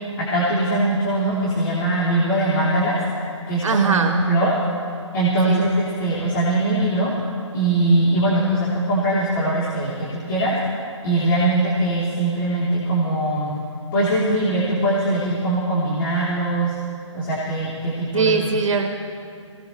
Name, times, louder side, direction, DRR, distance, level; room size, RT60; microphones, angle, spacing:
voice 1, 0.2-3.0 3.5-4.5 5.1-7.1 7.5-10.5 11.0-13.5 13.9-16.7 17.1-18.5, right 2 dB, 45° left, -8 dB, 3.9 m, -21 dB
voice 2, 3.6-4.1 5.5-5.6 18.1-18.9, right 5 dB, 75° right, 3 dB, 1.5 m, -21 dB
21.0 x 18.5 x 3.4 m, 2.3 s
hypercardioid pair, 145°, 16 cm